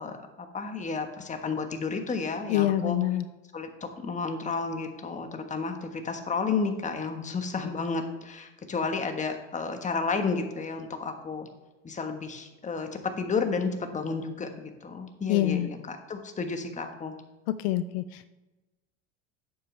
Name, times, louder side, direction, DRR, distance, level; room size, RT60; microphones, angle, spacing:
voice 1, 0.0-3.0 3.5-11.5 11.8-17.1, left 4 dB, 25° left, 6 dB, 1.4 m, -32 dB
voice 2, 2.5-3.2 15.3-15.7 17.5-18.3, left 13 dB, 80° left, 13 dB, 0.5 m, -26 dB
10.5 x 7.8 x 3.3 m, 1.1 s
supercardioid pair, 95°, 30 cm